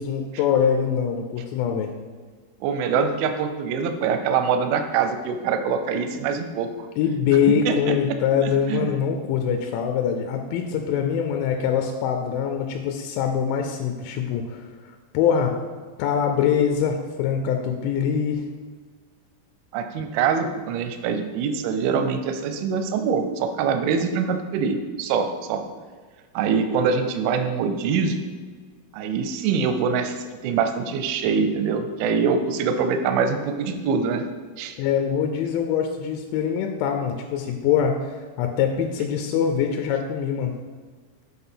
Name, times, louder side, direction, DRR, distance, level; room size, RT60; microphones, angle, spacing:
voice 1, 0.0-1.9 7.0-15.5 16.0-18.5 34.8-40.5, left 8 dB, 85° left, 4 dB, 2.9 m, -23 dB
voice 2, 2.6-6.9 7.7-7.9 8.7-8.9 19.7-25.6 26.3-28.2 28.9-34.2 34.6-34.8, right 6 dB, 90° right, 7 dB, 3.0 m, -24 dB
8.0 x 3.9 x 5.6 m, 1.5 s
omnidirectional pair, 5.3 m